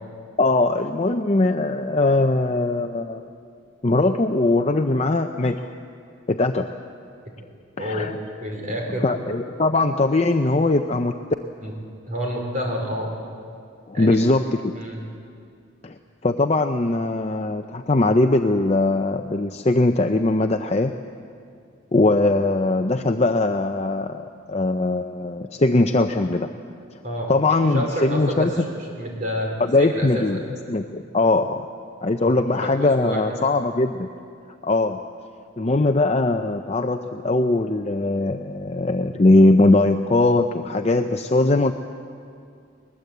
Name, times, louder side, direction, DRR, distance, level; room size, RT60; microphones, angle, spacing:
voice 1, 0.4-3.3 3.8-5.7 6.3-6.7 7.8-8.2 9.0-11.1 13.9-14.6 15.8-20.9 21.9-26.5 27.3-28.5 29.6-30.4 30.7-31.7 32.0-34.1 34.6-35.0 35.6-41.7, left 2 dB, 30° left, 6 dB, 0.5 m, -20 dB
voice 2, 7.8-9.1 11.6-11.7 12.1-13.1 13.9-14.2 14.7-15.0 27.0-29.5 29.8-30.4 32.2-32.3 32.8-33.2, equal, 40° right, 0 dB, 4.1 m, -29 dB
21.0 x 20.5 x 8.0 m, 2.4 s
head